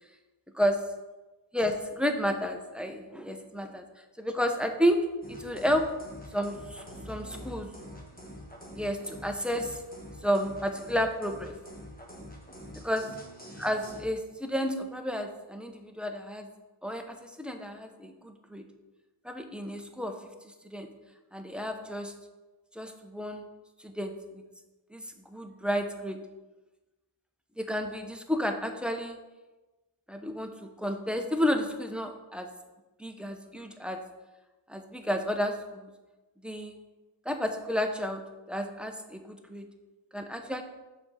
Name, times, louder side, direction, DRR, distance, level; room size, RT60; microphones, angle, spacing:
voice 1, 1.5-3.8 4.2-5.0 5.3-5.9 6.3-7.7 8.7-9.8 10.2-11.5 12.8-13.0 13.6-16.5 16.8-18.6 19.2-20.1 20.4-20.9 21.3-22.1 22.7-23.5 23.8-24.4 24.9-26.2 27.6-29.2 30.1-32.5 33.0-34.0 34.7-35.9 36.4-36.8 37.2-38.2 38.5-39.7 40.1-40.6, equal, ahead, 5 dB, 0.8 m, -31 dB
sound 1, 5.2-14.0, equal, 20° left, 1.3 m, -46 dB
5.9 x 4.7 x 5.6 m, 1.1 s
wide cardioid pair, 40°, 49 cm